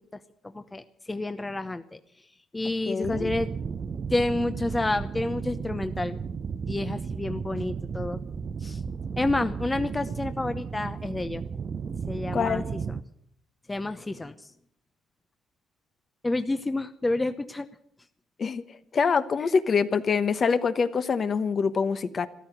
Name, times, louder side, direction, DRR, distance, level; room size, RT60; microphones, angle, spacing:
voice 1, 0.5-2.0 2.5-3.5 4.1-6.2 6.7-8.2 8.6-8.8 9.2-11.4 12.1-13.0 13.7-14.3 16.2-17.7, left 2 dB, 15° left, 10 dB, 0.8 m, -29 dB
voice 2, 2.9-3.3 12.3-12.6 18.4-18.6 18.9-22.3, left 5 dB, 45° left, 11 dB, 1.1 m, -25 dB
sound 1, 3.0-13.0, right 6 dB, 45° right, 0.6 m, -34 dB
14.0 x 12.5 x 7.9 m, 0.69 s
cardioid pair, 85°, 0 cm